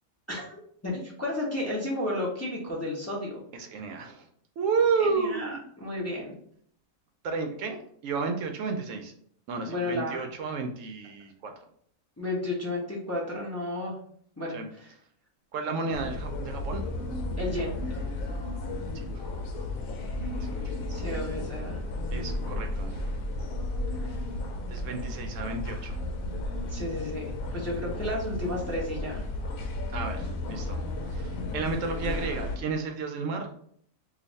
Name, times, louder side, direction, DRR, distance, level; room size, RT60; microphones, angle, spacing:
voice 1, 0.3-3.4 5.0-6.4 9.6-10.2 12.2-14.0 14.4-14.9 17.4-18.0 20.9-21.8 24.0-24.1 26.7-29.2, left 1 dB, 15° left, -5 dB, 0.6 m, -33 dB
voice 2, 3.5-4.3 4.6-5.7 7.2-9.1 9.5-11.5 14.5-14.7 15.5-16.8 18.9-19.4 20.4-20.5 22.1-23.1 24.7-26.0 29.9-33.5, right 4 dB, 70° right, 5 dB, 0.9 m, -32 dB
sound 1, 15.9-32.6, left 1 dB, 80° left, 1.0 m, -33 dB
3.2 x 2.5 x 4.0 m, 0.64 s
omnidirectional pair, 1.4 m